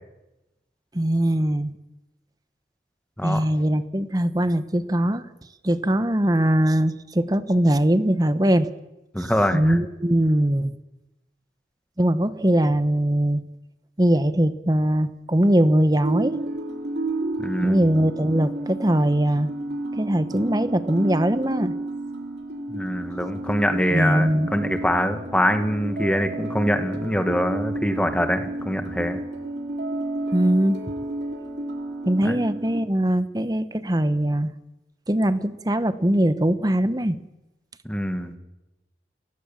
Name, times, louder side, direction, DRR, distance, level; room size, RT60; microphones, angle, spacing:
voice 1, 0.9-1.7 3.2-5.2 5.6-8.7 9.2-10.7 12.0-13.4 14.0-16.4 17.6-19.5 19.9-21.7 23.9-24.5 30.3-30.8 32.1-34.5 35.1-37.2, right 1 dB, 20° right, 12 dB, 0.9 m, -21 dB
voice 2, 9.1-9.8 17.4-17.8 22.7-29.2 32.2-32.4 37.9-38.3, equal, 5° left, 8 dB, 1.7 m, -24 dB
sound 1, 16.0-32.8, right 2 dB, 70° right, 3.0 m, -31 dB
29.5 x 16.5 x 7.2 m, 0.97 s
head